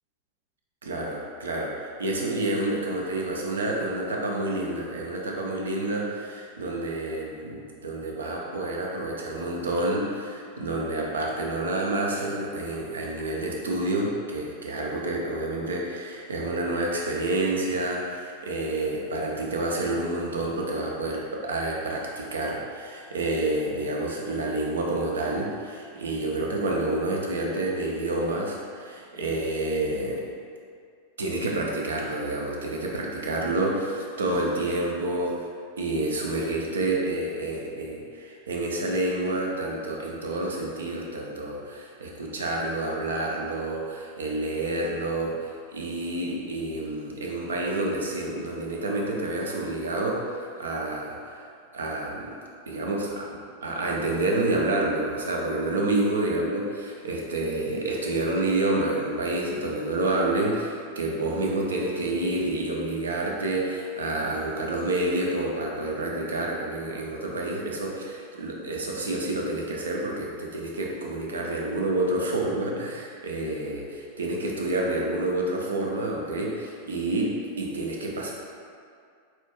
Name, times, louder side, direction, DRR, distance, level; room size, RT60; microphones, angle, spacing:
voice 1, 0.8-30.2 31.2-35.5 35.8-51.5 51.7-52.3 52.7-53.3 53.6-78.3, right 2 dB, 70° right, -1 dB, 0.5 m, -28 dB
4.2 x 2.3 x 3.0 m, 2.2 s
figure-of-eight pair, 90°, 0 cm